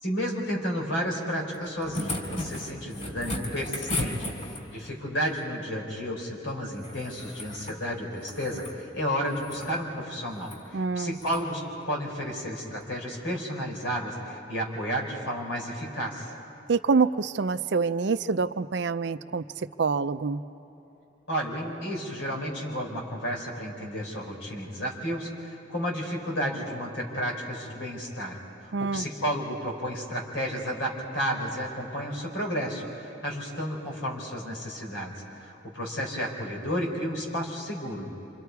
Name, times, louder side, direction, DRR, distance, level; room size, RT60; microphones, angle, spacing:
voice 1, 0.0-11.6 11.9-16.3 21.3-28.4 28.6-38.1, equal, 90° left, 0 dB, 4.3 m, -32 dB
sound 1, 1.5-4.9 6.8-7.8 8.2-8.8 9.3-9.7 10.4-10.6 11.2-11.4 12.8-12.9, left 1 dB, 40° left, 3.7 m, -35 dB
voice 2, 10.7-11.2 16.7-19.4 19.8-20.4 28.7-29.1, right 4 dB, 65° right, 13 dB, 0.5 m, -26 dB
28.0 x 27.0 x 4.7 m, 3.0 s
head